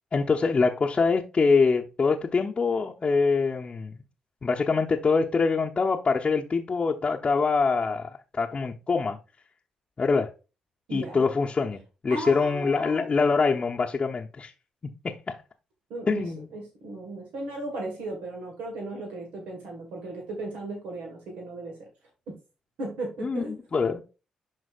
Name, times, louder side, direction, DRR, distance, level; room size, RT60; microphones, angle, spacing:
voice 1, 0.1-4.0 4.4-9.2 10.0-10.3 10.9-14.5 15.0-15.4 16.1-16.5 23.2-24.0, left 4 dB, 40° left, 0.8 m, -24 dB
voice 2, 10.9-11.2 12.1-13.1 15.9-16.2 16.5-21.9 22.3-22.4 22.8-23.6, right 2 dB, 75° right, 1.7 m, -36 dB
11.5 x 4.0 x 2.4 m
hypercardioid pair, 45°, 3 cm